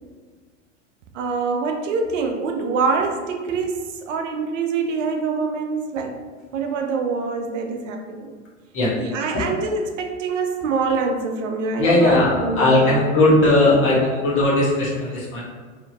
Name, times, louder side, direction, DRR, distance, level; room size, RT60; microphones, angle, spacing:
voice 1, 1.1-6.3 6.5-8.3 8.9-13.0 13.7-13.9 14.1-14.2, right 4 dB, 75° right, 4 dB, 0.6 m, -25 dB
voice 2, 11.8-15.4, left 2 dB, 35° left, -6 dB, 1.4 m, -18 dB
3.4 x 2.6 x 2.8 m, 1.5 s
hypercardioid pair, 95°, 38 cm